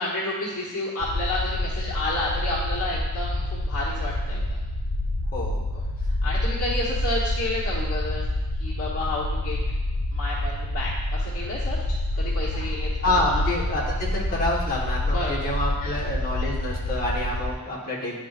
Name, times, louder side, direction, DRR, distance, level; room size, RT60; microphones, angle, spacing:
voice 1, 0.0-4.6 5.7-5.8 6.2-8.2 8.6-9.6 10.1-12.9 13.2-13.4 15.1-16.0, left 1 dB, 80° left, -9 dB, 1.2 m, -30 dB
sound 1, 1.0-17.5, left 1 dB, 60° left, 0.5 m, -27 dB
voice 2, 13.0-18.2, left 1 dB, 40° left, -4 dB, 1.3 m, -27 dB
10.5 x 3.8 x 2.5 m, 1.2 s
head